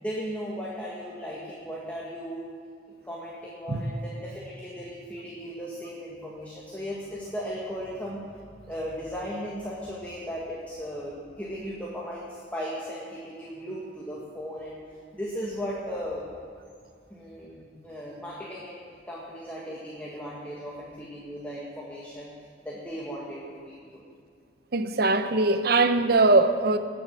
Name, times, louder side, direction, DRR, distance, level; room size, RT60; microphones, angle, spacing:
voice 1, 0.0-2.5 3.0-8.2 8.7-14.8 15.1-16.2 17.1-18.8 19.1-22.3 22.6-24.0, equal, 10° left, -5 dB, 1.7 m, -36 dB
voice 2, 24.7-26.8, right 2 dB, 60° right, 10 dB, 0.8 m, -21 dB
19.5 x 7.9 x 6.1 m, 2.3 s
head